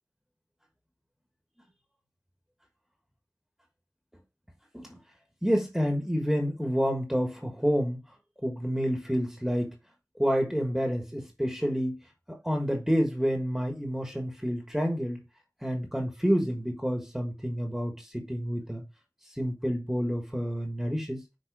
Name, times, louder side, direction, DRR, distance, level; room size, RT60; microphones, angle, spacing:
voice 1, 5.4-8.0 8.4-9.8 10.2-12.0 12.3-15.2 15.6-18.8 19.2-21.2, equal, 5° right, 1.4 m, -29 dB
6.2 x 3.8 x 4.8 m
wide cardioid pair, 40°, 7 cm